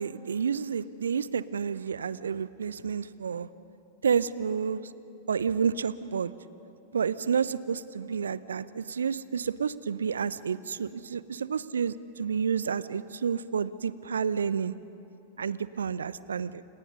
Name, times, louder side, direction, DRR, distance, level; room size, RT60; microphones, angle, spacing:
voice 1, 0.0-3.5 4.0-4.8 5.3-6.3 6.9-14.7 15.4-16.6, right 6 dB, 70° right, 18 dB, 0.7 m, -30 dB
29.5 x 29.5 x 5.4 m, 2.8 s
figure-of-eight pair, 90°, 0 cm